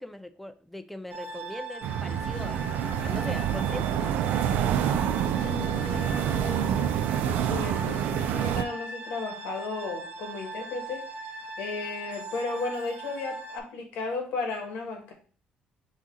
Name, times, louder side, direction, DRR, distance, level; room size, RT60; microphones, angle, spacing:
voice 1, 0.0-4.0, left 1 dB, 5° left, 10 dB, 0.4 m, -40 dB
sound 1, 1.1-13.6, right 3 dB, 55° right, 0.9 m, -40 dB
sound 2, 1.8-8.6, right 9 dB, 85° right, 0.3 m, -27 dB
voice 2, 5.4-6.8 7.3-11.0 11.6-15.1, left 3 dB, 90° left, 3 dB, 1.2 m, -34 dB
5.5 x 2.5 x 3.7 m, 0.42 s
cardioid pair, 120°, 3 cm